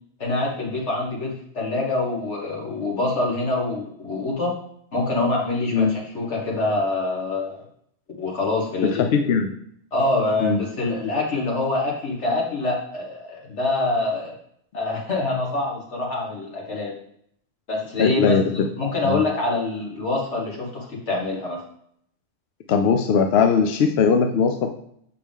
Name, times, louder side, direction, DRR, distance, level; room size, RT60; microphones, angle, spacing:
voice 1, 0.2-4.5 4.9-7.6 8.2-9.0 9.9-14.3 14.7-16.9 17.7-21.6, left 2 dB, 85° left, -2 dB, 1.9 m, -25 dB
voice 2, 8.8-9.5 10.4-10.6 18.0-18.5 19.0-19.2 22.7-24.7, left 5 dB, 70° left, 6 dB, 0.8 m, -20 dB
6.9 x 4.8 x 3.5 m, 0.67 s
omnidirectional pair, 1.2 m